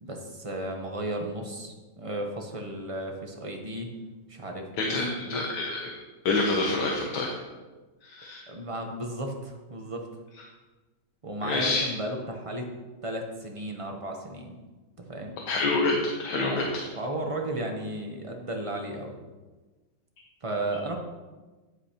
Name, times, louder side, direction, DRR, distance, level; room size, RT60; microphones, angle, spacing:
voice 1, 0.0-3.9 4.3-5.5 8.5-10.1 11.2-12.7 13.0-14.6 15.0-15.4 16.4-16.7 17.0-19.2 20.4-21.0, right 1 dB, 40° right, 2 dB, 0.5 m, -34 dB
voice 2, 4.8-5.9 6.2-7.3 8.0-8.4 11.4-11.8 15.5-16.8, left 3 dB, 70° left, 0 dB, 1.5 m, -27 dB
9.8 x 8.1 x 2.9 m, 1.2 s
omnidirectional pair, 1.9 m